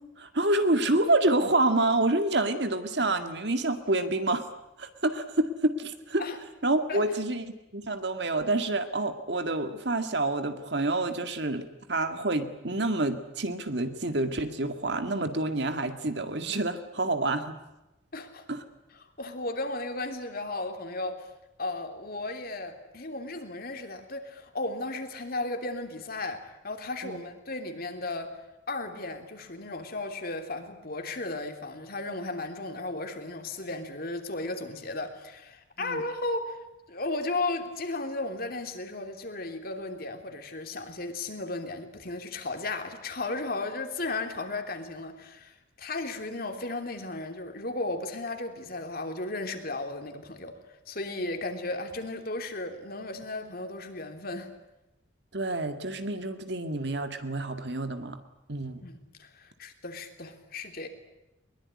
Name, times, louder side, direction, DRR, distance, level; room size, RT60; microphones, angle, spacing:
voice 1, 0.2-4.5 4.8-6.2 6.6-11.6 11.9-17.6 18.5-18.6 27.0-27.2 35.8-36.0 55.3-58.2 58.5-58.9, right 2 dB, 60° right, 8 dB, 2.0 m, -28 dB
voice 2, 18.1-18.4 19.2-21.2 21.6-28.3 28.7-36.6 36.9-50.5 50.9-54.5 58.8-60.9, left 2 dB, 50° left, 5 dB, 3.2 m, -35 dB
22.5 x 22.0 x 9.8 m, 0.94 s
head